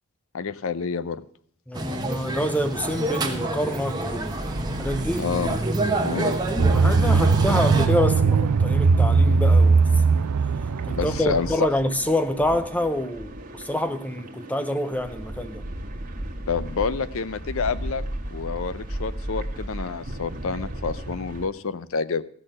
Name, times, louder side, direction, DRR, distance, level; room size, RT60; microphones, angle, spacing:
voice 1, 0.3-1.2 5.2-5.6 6.0-6.5 10.9-11.5 16.5-18.0 18.3-22.2, left 5 dB, 65° left, 0.5 m, -28 dB
voice 2, 1.7-4.4 4.8-5.3 6.7-9.8 10.1-10.3 10.8-15.6, left 1 dB, 5° left, 0.5 m, -27 dB
sound 1, 1.7-7.9, right 2 dB, 20° right, 1.1 m, -27 dB
sound 2, 2.6-21.5, right 1 dB, 40° right, 1.5 m, -36 dB
sound 3, 6.6-11.6, right 4 dB, 85° right, 0.4 m, -19 dB
14.5 x 6.4 x 7.6 m
head